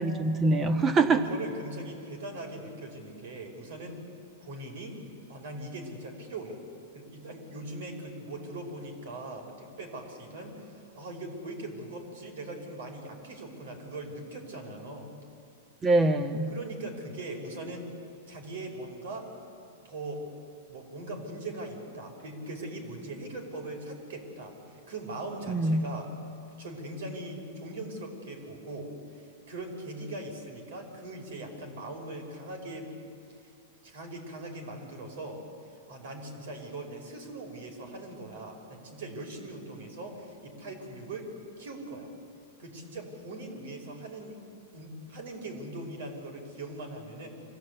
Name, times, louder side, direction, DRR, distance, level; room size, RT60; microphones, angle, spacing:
voice 1, 0.0-1.2 15.8-16.5 25.5-25.9, right 2 dB, 20° right, 7 dB, 1.5 m, -24 dB
voice 2, 1.1-4.0 4.4-5.0 5.3-6.6 6.9-15.1 16.5-17.9 18.3-19.3 19.8-20.3 20.7-26.1 26.6-32.9 33.8-35.4 35.9-41.3 41.6-42.1 42.6-44.4 44.7-47.3, right 2 dB, 70° right, 2 dB, 5.5 m, -40 dB
25.0 x 16.0 x 8.4 m, 2.4 s
hypercardioid pair, 135°, 0 cm